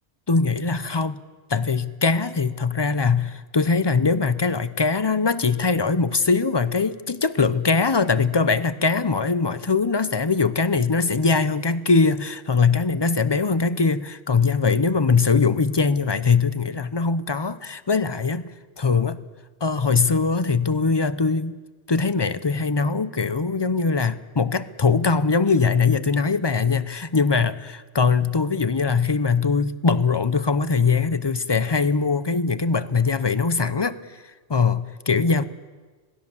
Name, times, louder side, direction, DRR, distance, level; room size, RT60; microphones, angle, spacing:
voice 1, 0.3-1.2 1.5-18.5 18.8-19.2 19.6-21.6 21.9-34.0 34.5-35.4, left 4 dB, 30° left, 15 dB, 0.6 m, -21 dB
27.0 x 19.0 x 7.1 m, 1.4 s
omnidirectional pair, 1.2 m